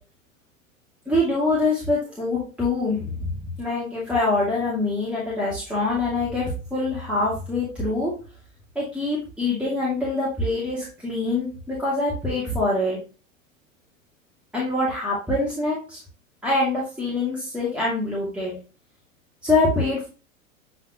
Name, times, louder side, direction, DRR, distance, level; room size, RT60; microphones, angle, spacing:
voice 1, 1.1-3.3 3.6-6.5 6.7-8.1 8.8-13.0 14.5-16.0 16.4-18.6 19.4-20.1, left 2 dB, 5° right, -6 dB, 2.2 m, -24 dB
7.8 x 4.2 x 2.9 m, 0.35 s
figure-of-eight pair, 95°, 41 cm